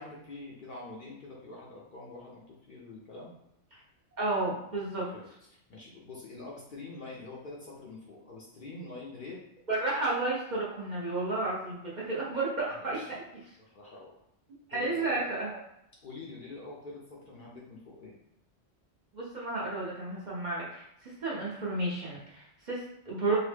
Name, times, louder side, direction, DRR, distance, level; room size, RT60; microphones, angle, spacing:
voice 1, 0.0-3.3 5.1-9.4 12.8-13.1 13.6-14.1 14.7-15.2 16.0-18.1, left 3 dB, 55° left, -4 dB, 0.6 m, -45 dB
voice 2, 4.2-5.1 9.7-13.0 14.7-15.6 19.1-23.4, right 2 dB, 50° right, -6 dB, 0.6 m, -32 dB
2.8 x 2.0 x 3.2 m, 0.80 s
omnidirectional pair, 1.2 m